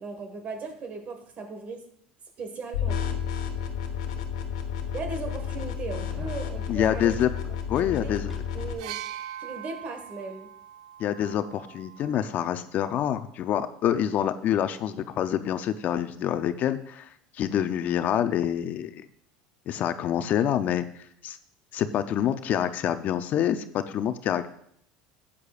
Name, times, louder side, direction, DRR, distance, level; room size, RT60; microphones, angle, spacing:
voice 1, 0.0-1.8 2.4-3.0 4.9-7.1 7.8-8.1 8.5-10.5, right 4 dB, 45° right, 6 dB, 1.7 m, -37 dB
sound 1, 2.7-8.7, left 8 dB, 85° left, 1.2 m, -31 dB
sound 2, 4.0-4.1 4.7-4.8 5.9-6.5 8.3-9.0 9.3-9.4, equal, ahead, 1.0 m, -49 dB
voice 2, 6.7-7.3 7.7-8.3 11.0-17.1 17.3-19.1 19.7-20.8 21.2-21.4 21.7-24.5, left 10 dB, 50° left, 11 dB, 0.6 m, -26 dB
sound 3, 8.8-12.6 13.6-13.8, right 11 dB, 85° right, 0.4 m, -42 dB
12.5 x 8.4 x 2.5 m, 0.68 s
supercardioid pair, 100°, 4 cm